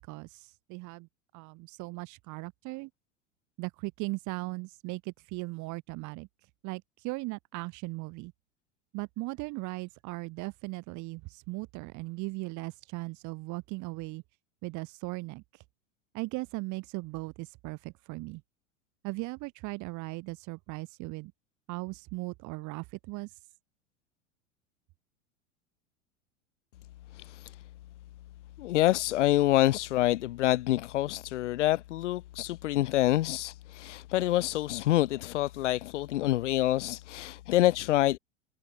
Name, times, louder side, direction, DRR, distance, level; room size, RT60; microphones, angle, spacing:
voice 1, 0.1-1.1 1.3-2.9 3.6-6.3 6.6-8.3 8.9-14.2 14.6-15.6 16.1-18.4 19.0-21.3 21.7-23.4, right 24 dB, 50° right, 5.8 m, -38 dB
voice 2, 27.1-27.6 28.6-38.2, left 15 dB, 65° left, 3.9 m, -27 dB
hypercardioid pair, 90°, 38 cm